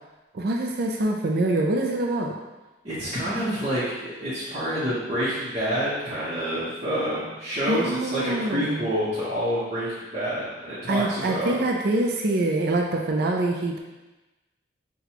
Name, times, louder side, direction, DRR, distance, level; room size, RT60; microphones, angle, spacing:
voice 1, 0.3-2.3 7.7-8.9 10.9-13.8, right 2 dB, 50° right, 0 dB, 0.4 m, -25 dB
voice 2, 2.8-11.6, equal, 30° right, -12 dB, 0.9 m, -28 dB
5.8 x 2.3 x 2.9 m, 1.1 s
head